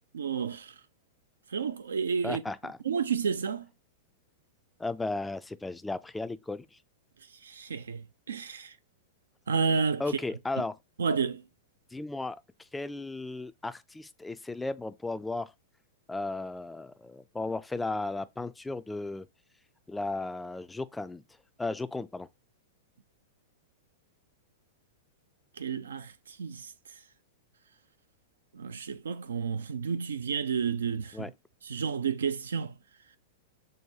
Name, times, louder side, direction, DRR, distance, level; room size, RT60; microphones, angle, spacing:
voice 1, 0.1-0.7 1.5-2.4 2.8-3.7 7.4-8.7 9.5-10.0 11.0-11.4 25.6-26.1 26.4-26.7 28.5-31.3 31.7-32.7, right 6 dB, 85° right, 0.6 m, -31 dB
voice 2, 2.2-2.8 4.8-6.7 10.0-10.8 11.9-12.4 12.7-15.5 16.1-19.3 19.9-21.2 21.6-22.3 31.1-31.3, left 2 dB, 10° left, 0.4 m, -35 dB
6.3 x 2.2 x 2.8 m
hypercardioid pair, 110°, 0 cm